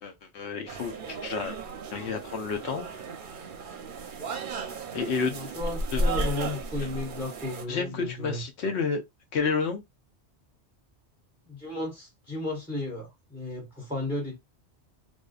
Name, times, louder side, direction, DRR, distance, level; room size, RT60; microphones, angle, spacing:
voice 1, 0.0-1.6 1.9-2.9 4.9-5.3 5.9-6.0 7.7-9.0 9.3-9.8, left 5 dB, 75° left, 1.0 m, -30 dB
sound 1, 0.7-7.6, right 2 dB, 55° right, 0.6 m, -34 dB
voice 2, 5.3-8.5 11.5-14.4, left 2 dB, 5° right, 0.8 m, -34 dB
2.6 x 2.3 x 2.3 m
omnidirectional pair, 1.2 m